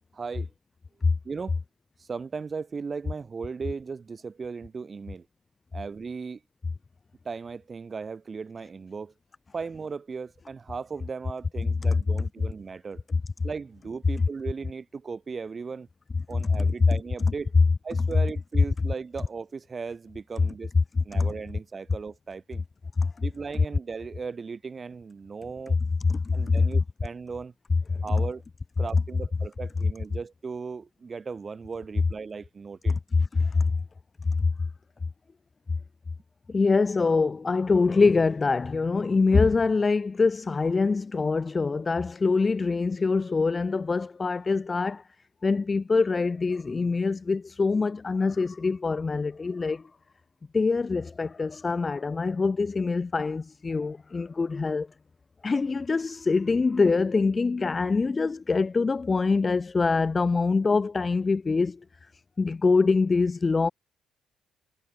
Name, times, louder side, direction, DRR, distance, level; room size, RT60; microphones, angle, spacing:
voice 1, 0.1-0.5 1.2-1.6 2.0-5.3 5.7-6.4 7.3-9.1 9.5-13.0 13.4-15.9 16.3-17.5 17.8-20.7 21.0-22.6 23.2-25.8 26.3-27.5 28.0-28.4 28.8-33.0, right 5 dB, 35° right, 5.4 m, -37 dB
voice 2, 26.0-26.5 32.9-33.0 33.3-33.6 36.5-45.0 45.4-49.8 50.5-54.9 55.4-61.8 62.4-63.7, left 4 dB, 30° left, 2.6 m, -24 dB
cardioid pair, 90°, 0 cm